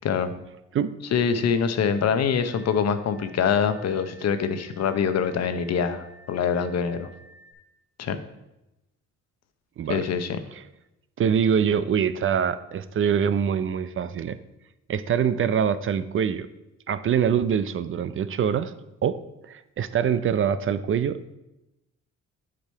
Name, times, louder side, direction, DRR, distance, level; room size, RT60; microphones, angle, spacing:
voice 1, 0.0-0.3 1.1-7.1 8.0-8.2 9.9-10.4, left 7 dB, 60° left, 10 dB, 0.8 m, -24 dB
sound 1, 1.1-7.5, equal, 80° right, 2.5 m, -53 dB
voice 2, 11.2-14.4 14.9-16.5 16.9-18.7 19.0-19.2 19.4-21.3, right 8 dB, 45° right, 13 dB, 0.4 m, -24 dB
8.4 x 5.0 x 4.5 m, 0.93 s
cardioid pair, 90°, 30 cm